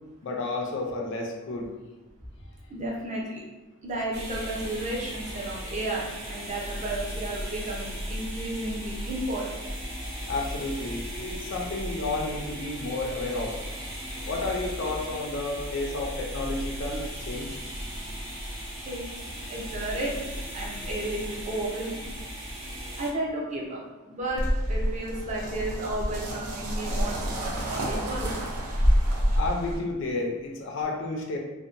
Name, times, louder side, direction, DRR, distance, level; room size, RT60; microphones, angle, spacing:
voice 1, 0.2-1.7 10.2-13.6 14.3-17.6 29.3-31.4, left 2 dB, 55° left, 0 dB, 0.4 m, -31 dB
voice 2, 2.7-3.4 3.8-9.7 18.9-19.0 19.5-22.0 23.0-28.3, right 1 dB, 30° right, -3 dB, 0.5 m, -33 dB
sound 1, 4.1-23.1, equal, 50° right, 0.9 m, -36 dB
sound 2, 24.4-29.8, equal, 90° right, 0.6 m, -27 dB
2.7 x 2.1 x 2.4 m, 1.1 s
head